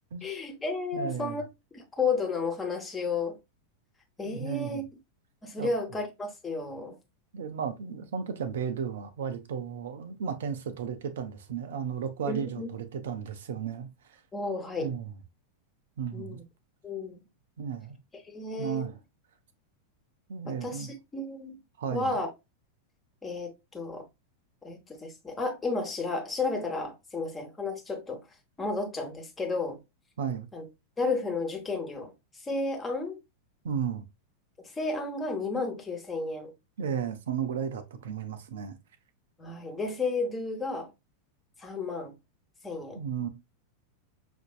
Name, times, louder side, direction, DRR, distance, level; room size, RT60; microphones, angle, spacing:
voice 1, 0.2-1.4 1.7-3.4 4.2-4.8 5.4-7.0 12.3-12.7 14.3-14.9 16.1-16.4 16.8-17.2 18.2-18.9 20.6-21.6 21.9-22.3 23.2-24.0 24.6-28.2 28.6-29.8 30.5-30.6 31.0-32.1 32.4-33.2 34.6-36.5 39.4-40.9 41.6-42.1 42.6-43.0, left 3 dB, 15° left, 1.1 m, -32 dB
voice 2, 0.9-1.4 4.2-4.8 5.6-5.7 7.3-14.2 14.8-15.1 16.0-16.4 17.6-18.0 18.6-18.9 20.3-20.9 21.8-22.2 30.2-30.5 33.6-34.0 36.8-38.8 42.9-43.3, right 7 dB, 60° right, 0.6 m, -34 dB
5.9 x 2.6 x 2.4 m
figure-of-eight pair, 90°, 0 cm